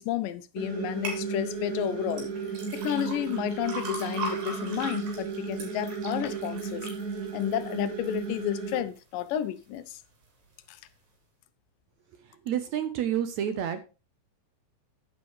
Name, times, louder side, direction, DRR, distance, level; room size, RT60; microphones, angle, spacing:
voice 1, 0.0-2.3 2.7-6.9 7.3-10.0 10.7-10.8, left 12 dB, 80° left, 2.4 m, -31 dB
sound 1, 0.6-8.8, right 5 dB, 50° right, 1.2 m, -34 dB
sound 2, 1.0-1.2 2.1-8.2 8.7-9.2 9.7-9.8, right 3 dB, 90° right, 5.4 m, -39 dB
voice 2, 12.5-13.8, right 9 dB, 70° right, 1.9 m, -29 dB
10.5 x 9.7 x 3.1 m
omnidirectional pair, 3.9 m